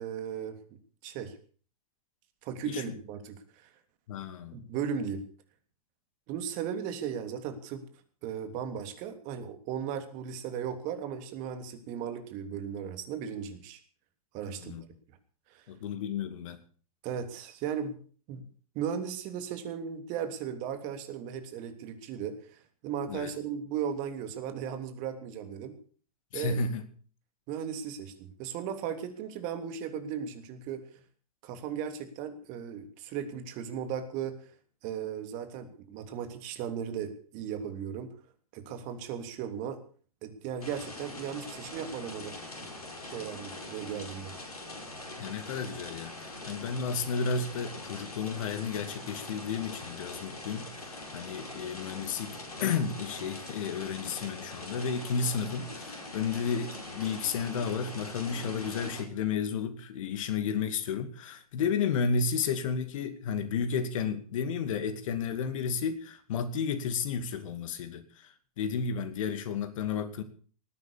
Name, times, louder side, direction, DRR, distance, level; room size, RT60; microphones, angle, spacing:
voice 1, 0.0-1.3 2.4-3.7 4.5-5.2 6.3-7.8 8.2-13.8 14.3-14.8 15.5-15.6 17.0-18.0 18.3-18.4 18.7-25.8 26.3-26.6 27.5-31.0 31.4-34.4 34.8-38.1 38.5-39.8 40.2-42.6 43.1-44.3, right 8 dB, 45° right, 8 dB, 3.2 m, -36 dB
voice 2, 4.1-4.6 14.5-14.8 15.7-16.6 23.1-23.3 26.3-26.8 45.2-70.2, left 6 dB, 60° left, 10 dB, 2.4 m, -32 dB
sound 1, 40.6-59.0, left 2 dB, 90° left, 5.3 m, -43 dB
19.5 x 9.7 x 7.0 m, 0.43 s
hypercardioid pair, 100°, 19 cm